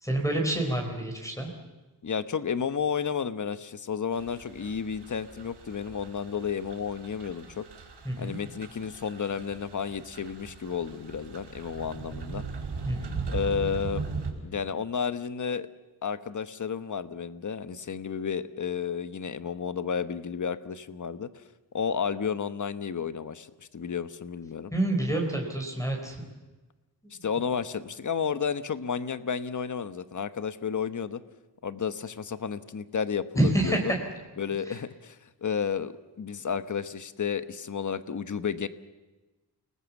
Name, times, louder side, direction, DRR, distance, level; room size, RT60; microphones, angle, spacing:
voice 1, 0.0-1.5 8.1-8.4 12.9-13.2 24.7-26.2 27.0-27.1 33.4-33.8 34.7-34.8, right 1 dB, 5° left, 1 dB, 4.1 m, -27 dB
voice 2, 2.0-7.6 8.2-12.4 13.3-14.0 14.4-15.7 16.0-21.3 21.7-23.5 23.7-24.7 27.2-31.2 31.6-33.9 34.4-38.7, left 6 dB, 45° left, 12 dB, 1.1 m, -32 dB
sound 1, 4.1-14.3, right 4 dB, 75° right, 5.3 m, -39 dB
29.0 x 19.5 x 7.2 m, 1.1 s
wide cardioid pair, 105°, 41 cm